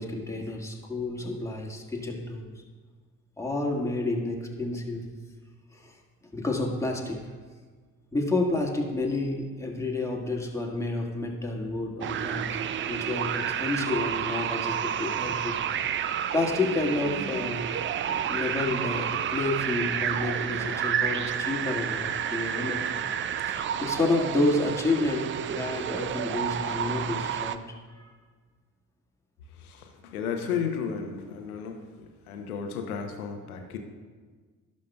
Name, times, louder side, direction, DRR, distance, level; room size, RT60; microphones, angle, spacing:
voice 1, 0.0-2.5 3.4-5.1 5.7-6.0 6.3-7.3 8.1-12.6 12.9-15.7 16.3-17.6 18.1-22.8 23.5-27.6 28.0-28.1, left 2 dB, 5° left, -1 dB, 1.7 m, -30 dB
sound 1, 12.0-27.6, right 9 dB, 30° right, 0.4 m, -30 dB
voice 2, 29.5-33.8, left 6 dB, 80° left, 4 dB, 0.9 m, -34 dB
16.5 x 6.3 x 2.3 m, 1.5 s
figure-of-eight pair, 45°, 43 cm